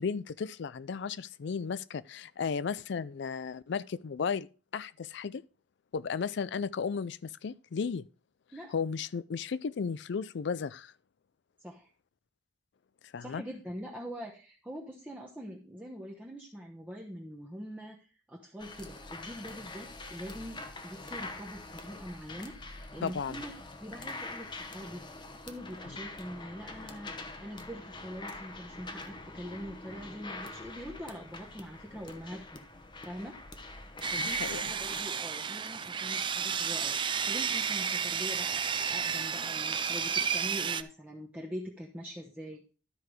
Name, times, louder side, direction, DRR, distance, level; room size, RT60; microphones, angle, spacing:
voice 1, 0.0-5.4 5.9-8.0 8.7-10.9 13.1-13.4 23.0-23.4 34.2-34.6, left 6 dB, 65° left, 0.4 m, -34 dB
voice 2, 13.2-23.5 23.8-25.0 25.5-27.1 27.4-32.6 33.0-42.6, equal, 10° right, 1.0 m, -44 dB
sound 1, 18.6-35.0, left 2 dB, 25° left, 0.9 m, -45 dB
Sawing, 34.0-40.8, right 6 dB, 25° right, 0.4 m, -32 dB
12.5 x 4.7 x 4.8 m
head